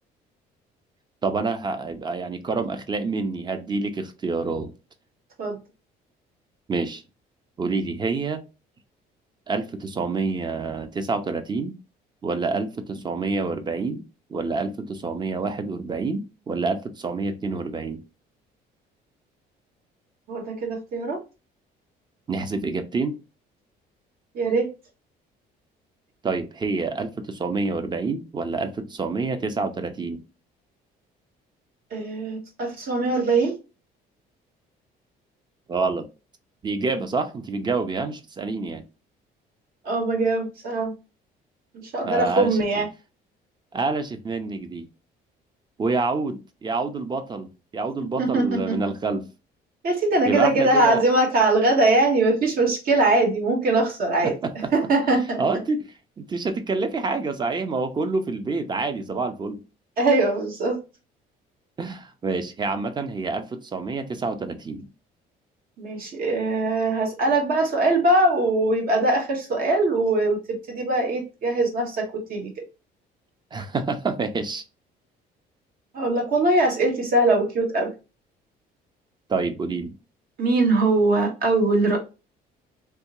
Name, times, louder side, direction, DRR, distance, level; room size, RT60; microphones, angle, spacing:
voice 1, 1.2-4.7 6.7-7.0 7.6-8.4 9.5-11.8 12.2-14.0 14.3-18.0 22.3-23.2 26.2-30.2 35.7-36.1 36.6-38.8 42.0-42.6 43.7-44.9 45.8-49.3 50.3-51.0 54.2-54.7 55.4-59.6 61.8-64.9 73.5-74.6 79.3-80.0, right 3 dB, 25° right, 0.6 m, -27 dB
voice 2, 20.3-21.2 24.3-24.7 31.9-33.5 39.8-40.9 41.7-42.9 48.2-48.8 49.8-54.3 54.7-55.4 60.0-60.8 65.8-72.6 75.9-77.9 80.4-82.0, right 2 dB, 60° right, 1.5 m, -22 dB
3.4 x 2.9 x 3.0 m
cardioid pair, 110°, 17 cm